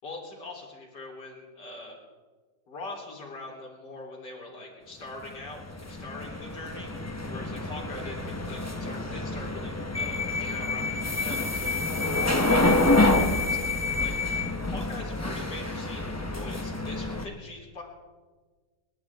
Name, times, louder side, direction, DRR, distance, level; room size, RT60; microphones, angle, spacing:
voice 1, 0.0-2.0 2.7-17.8, left 2 dB, 60° left, -2 dB, 4.1 m, -43 dB
sound 1, 5.2-17.3, left 2 dB, 25° left, 0.3 m, -27 dB
30.0 x 11.5 x 3.6 m, 1.4 s
omnidirectional pair, 2.0 m